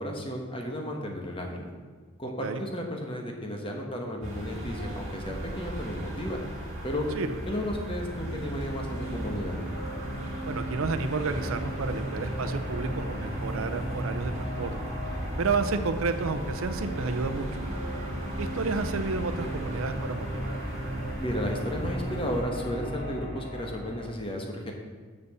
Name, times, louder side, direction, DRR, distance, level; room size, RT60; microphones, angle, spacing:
voice 1, 0.0-1.7 2.2-6.4 6.8-7.1 7.5-9.6 21.2-24.7, equal, 25° left, 1 dB, 1.3 m, -33 dB
sound 1, 4.2-22.4, right 1 dB, 30° right, 2.2 m, -37 dB
sound 2, 7.1-24.1, right 1 dB, 50° left, 2.7 m, -37 dB
voice 2, 10.5-14.9 15.4-17.6 18.4-20.5, right 4 dB, 70° right, 9 dB, 0.6 m, -31 dB
6.8 x 6.8 x 6.9 m, 1.5 s
head